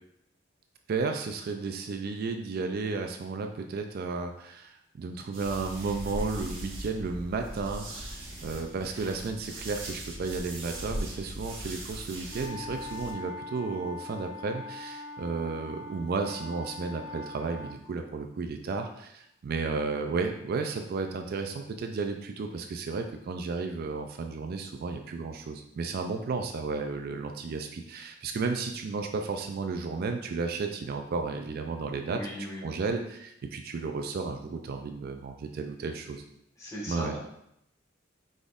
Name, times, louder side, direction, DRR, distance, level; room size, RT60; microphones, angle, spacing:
voice 1, 0.9-32.2 32.6-36.2 36.9-37.1, right 4 dB, 50° right, 5 dB, 0.3 m, -33 dB
sound 1, 5.3-13.1, right 1 dB, 75° right, 1.2 m, -39 dB
sound 2, 12.3-17.8, left 3 dB, 35° left, 1.0 m, -42 dB
voice 2, 32.1-32.8 36.6-37.2, equal, 15° left, -5 dB, 1.4 m, -37 dB
5.0 x 4.1 x 2.4 m, 0.77 s
head